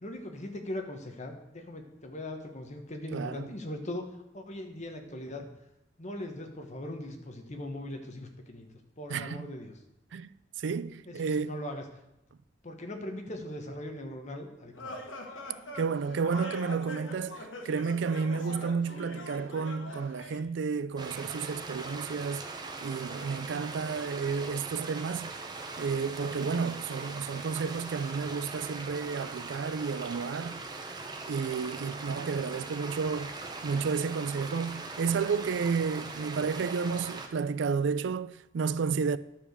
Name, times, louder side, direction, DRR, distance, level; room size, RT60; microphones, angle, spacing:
voice 1, 0.0-4.1 4.3-5.5 6.0-8.7 9.0-9.7 11.0-11.8 12.6-14.9, left 1 dB, 40° left, 1.3 m, -40 dB
voice 2, 3.1-3.5 9.1-9.5 10.1-10.3 10.6-11.5 15.7-22.5 22.8-25.3 25.8-30.6 31.3-33.3 33.6-39.2, right 5 dB, 65° right, 0.4 m, -31 dB
sound 1, 14.7-20.4, left 1 dB, 90° left, 1.5 m, -43 dB
sound 2, 21.0-37.3, right 3 dB, 20° right, 0.9 m, -41 dB
11.0 x 4.9 x 6.7 m
head